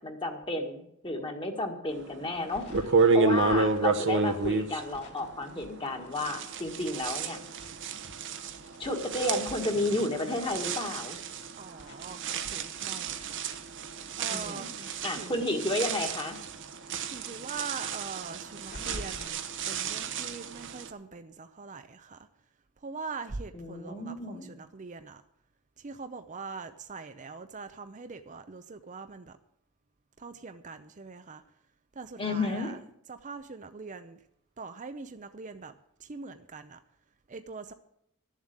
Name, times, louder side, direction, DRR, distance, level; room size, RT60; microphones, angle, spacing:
voice 1, 0.0-7.4 8.8-11.2 14.3-14.7 15.0-16.4 23.5-24.5 32.2-32.7, left 2 dB, 25° left, 1.7 m, -32 dB
sound 1, 2.2-2.3 2.7-5.8 6.1-20.9, right 4 dB, 55° right, 1.0 m, -31 dB
sound 2, 2.3-6.2 6.5-9.6 9.9-10.0 10.2-10.3 10.7-13.1 13.4-16.4 16.7-16.8 17.1-17.2 17.6-19.3, left 1 dB, 50° left, 2.8 m, -49 dB
voice 2, 11.6-13.4 14.2-15.4 17.1-22.3 22.8-25.2 25.8-29.4 30.2-31.4 31.9-32.8 33.1-34.2 34.6-35.7 36.0-36.8 37.3-37.7, right 4 dB, 35° right, 0.6 m, -42 dB
13.0 x 7.3 x 8.9 m
head